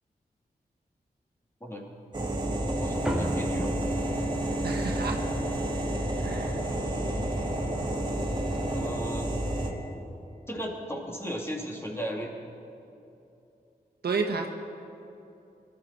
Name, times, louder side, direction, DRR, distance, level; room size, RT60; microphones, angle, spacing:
sound 1, 2.1-9.7, right 1 dB, 25° right, 2.6 m, -30 dB
voice 1, 2.7-3.7 7.1-7.2 8.7-9.3 10.5-12.3, equal, 15° left, -1 dB, 2.8 m, -35 dB
sound 2, 3.0-7.8, equal, 5° right, 2.1 m, -39 dB
voice 2, 4.6-5.2 6.2-6.6 14.0-14.5, right 4 dB, 75° right, 3 dB, 1.3 m, -31 dB
20.0 x 12.5 x 4.5 m, 2.8 s
cardioid pair, 50°, 17 cm